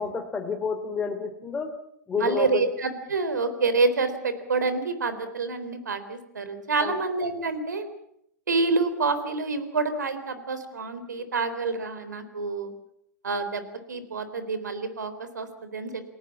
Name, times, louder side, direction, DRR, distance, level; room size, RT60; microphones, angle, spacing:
voice 1, 0.0-1.7 2.1-2.6 6.8-6.9, left 5 dB, 15° left, 4 dB, 2.9 m, -29 dB
voice 2, 2.2-7.9 8.5-12.7 13.2-16.0, right 3 dB, 85° right, 11 dB, 3.8 m, -27 dB
29.0 x 18.5 x 7.3 m, 0.73 s
hypercardioid pair, 110°, 9 cm